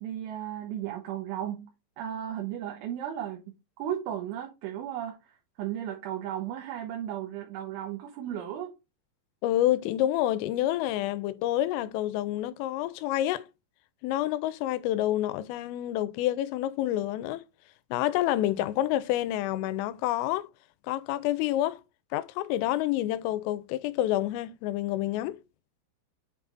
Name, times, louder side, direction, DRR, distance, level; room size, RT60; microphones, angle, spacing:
voice 1, 0.0-1.7 2.0-3.5 3.8-5.2 5.6-8.7, right 10 dB, 75° right, 3.5 m, -35 dB
voice 2, 9.4-13.5 14.0-17.4 17.9-20.5 20.9-21.8 22.1-25.4, left 14 dB, 90° left, 3.2 m, -28 dB
8.3 x 3.4 x 4.0 m
omnidirectional pair, 5.8 m